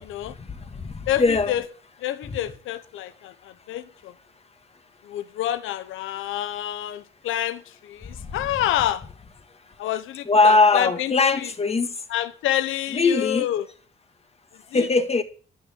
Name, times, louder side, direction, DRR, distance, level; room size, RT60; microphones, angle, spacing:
voice 1, 0.0-0.3 1.1-1.6 2.0-4.1 5.0-9.0 9.8-11.5 12.1-13.7 14.7-14.9, left 12 dB, 85° left, 1.1 m, -28 dB
voice 2, 0.8-1.5 2.3-2.4 10.3-11.9 12.9-13.5 14.7-15.2, left 3 dB, 30° left, 1.9 m, -20 dB
13.0 x 6.6 x 8.4 m
cardioid pair, 90°, 20 cm